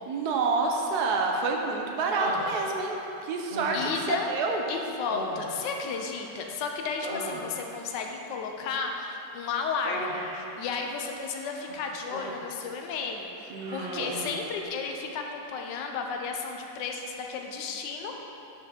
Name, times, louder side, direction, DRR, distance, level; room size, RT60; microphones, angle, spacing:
voice 1, 0.1-3.0 3.2-4.6 13.5-14.5, right 3 dB, 65° right, 1 dB, 1.1 m, -28 dB
Human voice, 2.1-3.0 3.5-4.2 5.0-6.5 6.8-7.8 9.8-10.5 11.5-12.6 12.9-13.2 13.6-14.4, right 1 dB, 45° right, 0.8 m, -37 dB
voice 2, 3.7-4.3 4.7-18.2, left 5 dB, 70° left, 2 dB, 1.3 m, -33 dB
5.9 x 4.8 x 6.5 m, 3.0 s
omnidirectional pair, 2.1 m